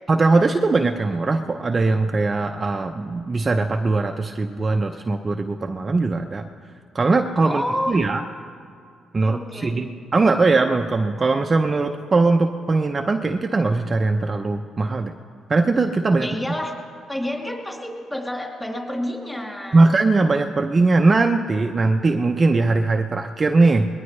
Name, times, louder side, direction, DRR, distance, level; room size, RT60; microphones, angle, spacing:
voice 1, 0.1-6.4 6.9-8.2 9.1-15.1 15.5-16.3 19.7-23.9, right 3 dB, 30° right, 4 dB, 0.7 m, -20 dB
voice 2, 7.4-8.0 9.2-9.8 16.2-16.8 17.1-19.9, left 1 dB, 10° left, 0 dB, 2.8 m, -29 dB
21.0 x 20.5 x 3.3 m, 2.3 s
cardioid pair, 90°, 0 cm